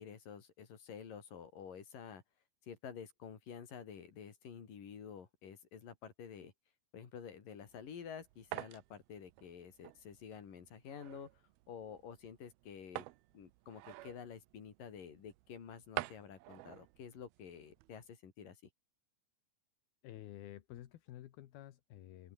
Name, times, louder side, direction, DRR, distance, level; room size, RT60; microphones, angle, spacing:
voice 1, 0.0-2.2 2.7-6.5 6.9-11.3 11.7-13.1 13.3-18.6, left 7 dB, 50° left, 4.8 m, -50 dB
sound 1, 7.6-18.1, right 18 dB, 85° right, 2.2 m, -49 dB
voice 2, 20.0-22.3, left 13 dB, 65° left, 3.0 m, -51 dB
open air
omnidirectional pair, 5.2 m